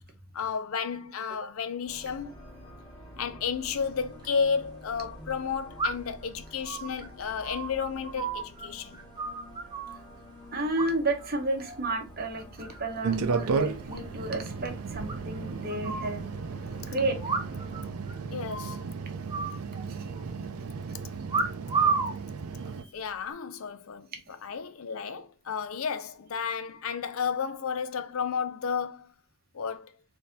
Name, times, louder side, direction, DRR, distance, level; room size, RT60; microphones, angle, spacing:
voice 1, 0.3-2.3 3.2-9.0 18.3-18.8 22.6-29.1 29.5-29.9, left 6 dB, 75° left, 0.5 m, -32 dB
sound 1, 1.9-17.9, equal, 25° left, 1.3 m, -49 dB
sound 2, 4.0-4.1 5.8-6.2 6.6-8.7 8.9-10.0 10.8-11.3 11.6-12.0 12.3-12.9 13.2-13.3 13.5-13.6 13.9-14.0 14.3-14.4 15.1-16.1 17.2-17.8 18.1-18.2 18.5-18.8 19.3-20.2 21.3-22.2 22.9-23.3, right 4 dB, 20° right, 0.6 m, -31 dB
voice 2, 10.5-16.3 16.9-17.2 19.9-20.1, right 2 dB, 45° right, 0.9 m, -31 dB
sound 3, 13.0-22.8, right 5 dB, 90° right, 0.4 m, -34 dB
4.1 x 2.7 x 3.4 m
head